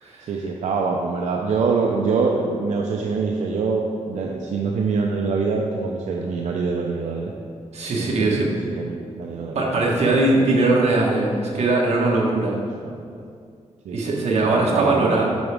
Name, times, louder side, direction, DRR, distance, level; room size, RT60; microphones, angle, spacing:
voice 1, 0.3-7.3 7.9-8.4 8.8-9.6 12.8-13.2 13.8-14.2 14.4-15.2, right 4 dB, 90° right, 0 dB, 0.6 m, -24 dB
voice 2, 7.7-8.5 9.5-12.6 13.9-15.2, right 2 dB, 65° right, -3 dB, 1.4 m, -20 dB
9.1 x 6.0 x 3.4 m, 2.2 s
wide cardioid pair, 170°, 12 cm